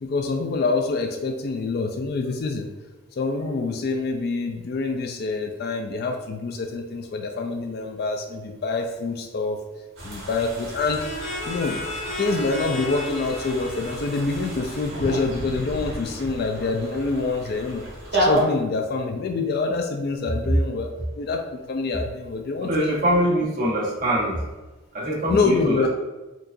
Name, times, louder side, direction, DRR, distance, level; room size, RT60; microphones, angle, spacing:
voice 1, 0.0-2.7 3.1-9.6 10.0-11.1 11.5-11.8 12.2-17.9 18.1-23.0 25.3-25.9, left 3 dB, 50° left, 4 dB, 0.3 m, -26 dB
sound 1, 10.0-18.4, right 1 dB, 75° right, 1.3 m, -32 dB
sound 2, 11.0-15.6, left 1 dB, 70° left, 1.1 m, -35 dB
voice 2, 22.6-24.4 24.9-25.9, equal, 40° right, -6 dB, 1.1 m, -23 dB
4.6 x 2.4 x 2.5 m, 1.1 s
head